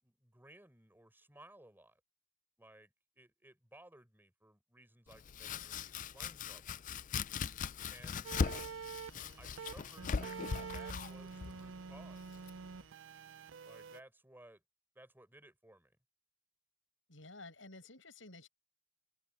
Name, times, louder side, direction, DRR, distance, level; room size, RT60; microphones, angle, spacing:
voice 1, 0.0-2.0 2.6-6.9 7.9-8.4 9.4-10.4 10.7-12.2 13.6-14.6 15.0-15.9, right 1 dB, 10° right, 5.3 m, -59 dB
Domestic sounds home sounds, 5.1-12.8, left 5 dB, 45° left, 0.4 m, -40 dB
broken atm, 8.2-14.0, right 5 dB, 90° right, 0.5 m, -47 dB
voice 2, 17.1-18.5, left 2 dB, 85° left, 7.3 m, -52 dB
head